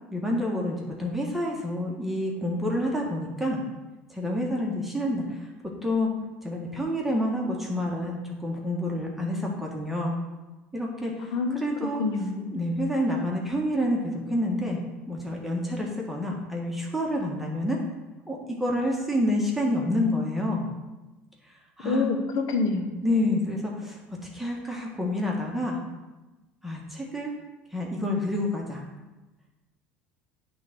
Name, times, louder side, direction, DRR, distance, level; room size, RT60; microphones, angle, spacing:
voice 1, 0.1-3.6 4.1-5.5 5.8-6.1 6.4-10.2 10.7-12.0 12.5-14.8 15.1-17.8 18.3-20.7 21.5-22.1 23.0-24.0 24.3-25.8 26.6-27.3 27.7-28.8, left 1 dB, 5° right, -2 dB, 1.7 m, -28 dB
voice 2, 11.3-11.7 12.0-12.6 21.8-23.0, left 3 dB, 65° left, 5 dB, 1.2 m, -27 dB
8.7 x 3.8 x 6.1 m, 1.1 s
supercardioid pair, 85°, 6 cm